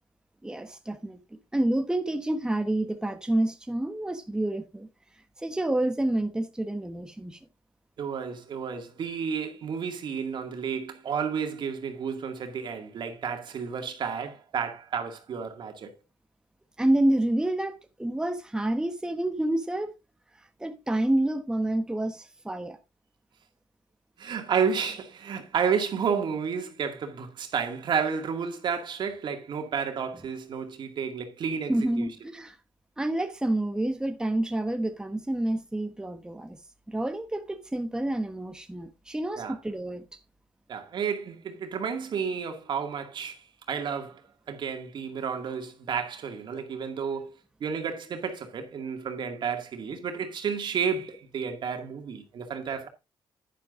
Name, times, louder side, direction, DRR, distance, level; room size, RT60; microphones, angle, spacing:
voice 1, 0.4-1.2 1.5-4.9 5.4-7.4 16.8-19.9 20.6-22.8 31.7-32.6 33.0-36.6 36.9-40.0, right 1 dB, 10° right, 1.1 m, -28 dB
voice 2, 8.0-15.9 24.2-32.1 39.4-39.6 40.7-44.2 44.5-47.3 47.6-52.9, right 6 dB, 65° right, 2.2 m, -31 dB
11.0 x 10.0 x 2.6 m
cardioid pair, 95°, 9 cm